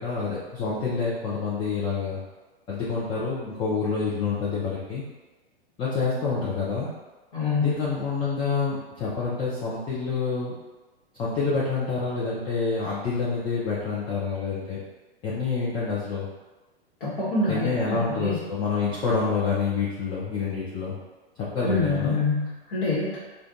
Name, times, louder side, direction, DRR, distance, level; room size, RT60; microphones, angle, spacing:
voice 1, 0.0-2.2 2.7-5.0 5.8-6.9 7.6-10.5 11.2-14.8 15.2-16.3 17.5-21.0 21.4-22.2, left 4 dB, 15° left, -7 dB, 0.4 m, -27 dB
voice 2, 7.3-7.8 17.0-18.4 21.6-23.2, left 3 dB, 55° left, -8 dB, 1.1 m, -26 dB
2.4 x 2.2 x 3.8 m, 1.2 s
figure-of-eight pair, 110°, 31 cm